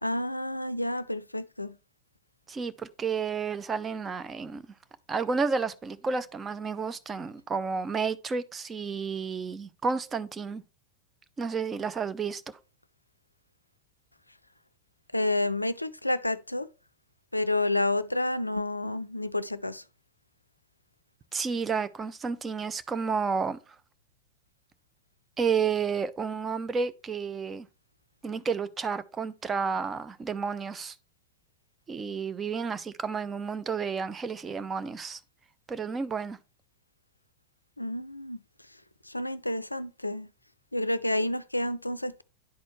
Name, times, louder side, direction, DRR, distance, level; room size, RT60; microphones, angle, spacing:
voice 1, 0.0-1.8 15.1-16.7 17.3-19.8 37.8-38.4 39.1-40.3 40.7-42.2, left 1 dB, 85° left, 0.3 m, -29 dB
voice 2, 2.5-4.7 5.1-10.6 11.4-12.4 21.3-23.6 25.4-27.7 28.2-30.9 31.9-35.2 35.7-36.4, right 5 dB, 20° right, 0.5 m, -31 dB
10.5 x 4.2 x 3.1 m
figure-of-eight pair, 90°, 0 cm